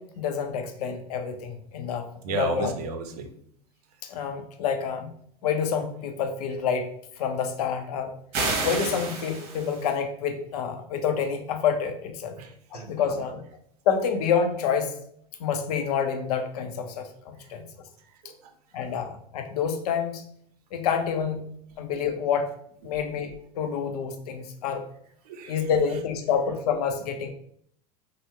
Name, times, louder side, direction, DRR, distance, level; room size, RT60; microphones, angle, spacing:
voice 1, 0.0-2.7 4.1-5.1 5.4-6.9 7.2-8.1 8.6-12.4 12.7-13.4 13.9-14.9 15.4-17.6 18.7-20.2 20.7-21.5 21.8-22.5 22.8-24.8 25.4-27.3, left 7 dB, 75° left, 6 dB, 0.5 m, -28 dB
voice 2, 2.2-3.3 12.4-13.1 17.4-17.5 18.1-18.5 22.8-22.9 25.2-25.7, right 4 dB, 75° right, 6 dB, 0.5 m, -34 dB
sound 1, 8.3-9.9, right 3 dB, 55° right, 0.9 m, -30 dB
2.8 x 2.0 x 3.3 m, 0.66 s
hypercardioid pair, 80°, 20 cm